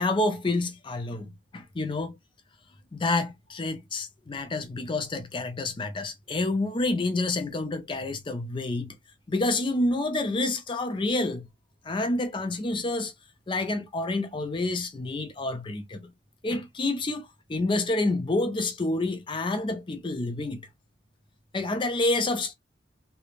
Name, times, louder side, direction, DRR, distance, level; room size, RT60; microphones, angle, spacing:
voice 1, 0.0-2.1 2.9-8.9 9.3-11.5 11.8-13.1 13.5-16.1 16.4-20.7 21.5-22.5, left 2 dB, 25° left, 0.4 m, -28 dB
3.1 x 2.0 x 2.4 m
head